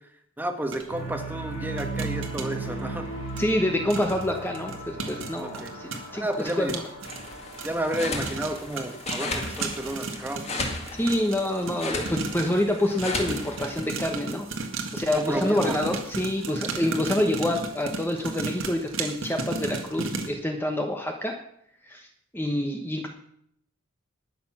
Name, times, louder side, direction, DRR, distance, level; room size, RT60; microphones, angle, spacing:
voice 1, 0.4-3.1 5.4-5.7 6.1-6.8 7.6-10.4 15.1-15.8, right 1 dB, 10° right, 5 dB, 1.2 m, -31 dB
sound 1, 0.7-0.8 1.8-2.5 3.4-3.5 3.9-4.2 4.5-12.6 13.0-20.3, right 3 dB, 70° right, 1.8 m, -34 dB
sound 2, 0.9-9.1, right 2 dB, 85° left, 6.2 m, -37 dB
voice 2, 3.4-6.3 6.6-6.8 11.0-14.5 14.9-21.4 21.8-22.1 22.3-23.1, left 1 dB, 10° left, 3 dB, 1.0 m, -27 dB
sound 3, 7.0-13.9, left 2 dB, 30° left, 2.1 m, -35 dB
19.5 x 6.8 x 6.0 m, 0.70 s
head